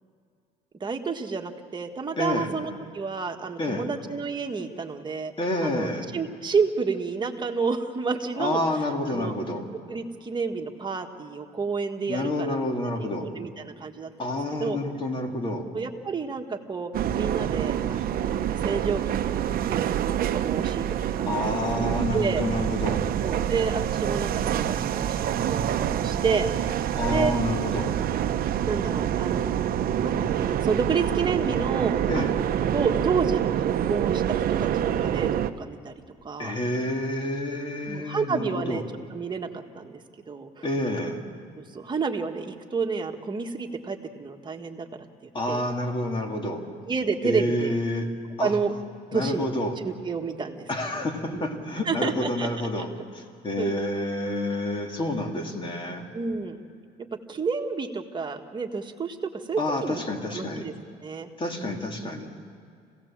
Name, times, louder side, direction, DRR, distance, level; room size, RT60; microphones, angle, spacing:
voice 1, 0.8-5.3 5.6-8.6 9.1-9.3 9.9-12.6 13.0-14.3 14.6-14.8 15.7-20.8 21.1-21.3 22.1-22.4 23.2-26.8 27.1-27.3 28.7-35.9 36.2-36.6 37.9-38.8 39.1-40.0 40.3-40.6 41.5-45.6 46.9-47.8 48.4-48.7 49.1-52.8 53.6-53.8 56.1-56.6 57.3-60.0 60.3-60.7 61.0-61.3 61.6-61.8, right 5 dB, 25° right, 3 dB, 1.7 m, -30 dB
voice 2, 2.2-2.5 3.6-3.9 5.4-6.1 8.4-9.6 12.1-13.3 14.2-15.7 21.3-23.0 26.9-27.9 32.1-32.3 36.4-38.8 40.6-41.2 45.3-46.6 47.2-48.1 48.4-48.5 49.1-49.8 50.7-52.9 53.1-56.1 59.6-60.7 61.4-62.3, left 1 dB, 30° left, 3 dB, 2.8 m, -29 dB
sound 1, 16.9-35.5, right 10 dB, 60° right, 0.9 m, -26 dB
26.5 x 17.5 x 7.4 m, 2.3 s
cardioid pair, 110°, 17 cm